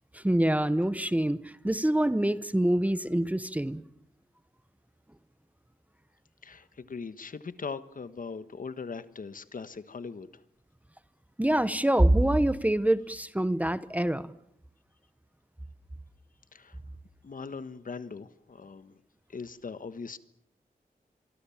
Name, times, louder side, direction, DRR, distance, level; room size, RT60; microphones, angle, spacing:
voice 1, 0.1-3.8 11.4-14.3, right 1 dB, 10° right, 14 dB, 0.9 m, -25 dB
voice 2, 6.4-10.3 16.5-16.8 17.2-19.0 19.3-20.2, left 5 dB, 60° left, 12 dB, 1.4 m, -40 dB
26.0 x 23.5 x 7.2 m, 0.71 s
wide cardioid pair, 125°, 16 cm